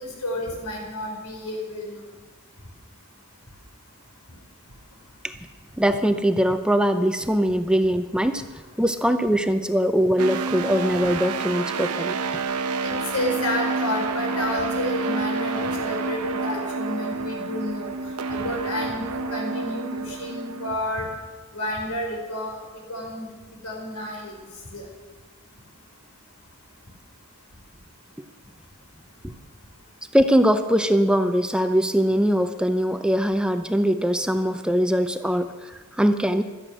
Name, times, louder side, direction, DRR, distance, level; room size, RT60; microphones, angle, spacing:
voice 1, 0.0-2.0 12.8-21.1 21.5-22.6 22.9-23.3 23.6-24.3 24.7-24.8, left 1 dB, 90° left, 1 dB, 4.8 m, -30 dB
voice 2, 5.8-8.5 8.8-12.2 30.1-36.4, equal, 5° right, 9 dB, 0.6 m, -21 dB
sound 1, 10.2-20.8, right 4 dB, 90° right, 1.0 m, -29 dB
16.5 x 12.5 x 6.3 m, 1.3 s
head